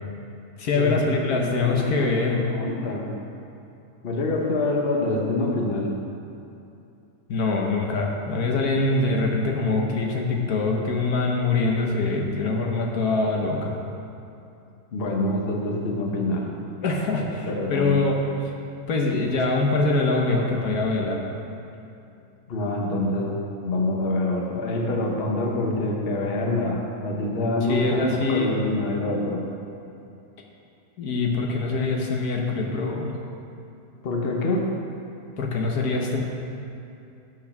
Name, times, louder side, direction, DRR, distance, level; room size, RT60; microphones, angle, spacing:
voice 1, 0.6-2.4 7.3-13.7 16.8-18.3 18.9-21.3 27.7-28.5 31.0-33.1 35.4-36.2, left 3 dB, 75° left, 0 dB, 1.5 m, -24 dB
voice 2, 1.3-3.1 4.0-5.9 14.9-16.5 17.3-18.0 22.5-29.4 34.0-34.7, left 2 dB, 45° left, 0 dB, 1.1 m, -26 dB
8.7 x 6.3 x 5.9 m, 2.7 s
omnidirectional pair, 1.6 m